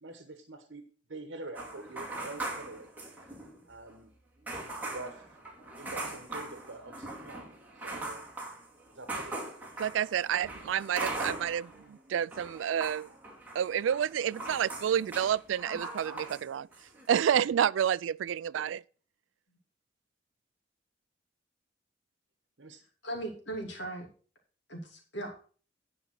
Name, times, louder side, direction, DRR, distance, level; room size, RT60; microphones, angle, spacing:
voice 1, 0.0-0.8 1.1-3.3 3.6-4.1 4.9-5.2 5.8-7.5 7.8-8.3 8.9-9.4 22.6-22.8, right 2 dB, 70° right, 1.1 m, -45 dB
sound 1, 1.6-3.6 3.9-4.0 4.5-11.8 12.1-16.4 16.7-17.1, right 2 dB, 10° right, 2.4 m, -40 dB
voice 2, 9.8-13.1 13.5-16.7 17.1-18.8, right 9 dB, 90° right, 0.3 m, -29 dB
voice 3, 23.0-24.1 24.7-25.4, right 1 dB, 70° left, 2.9 m, -38 dB
10.0 x 5.3 x 5.9 m
head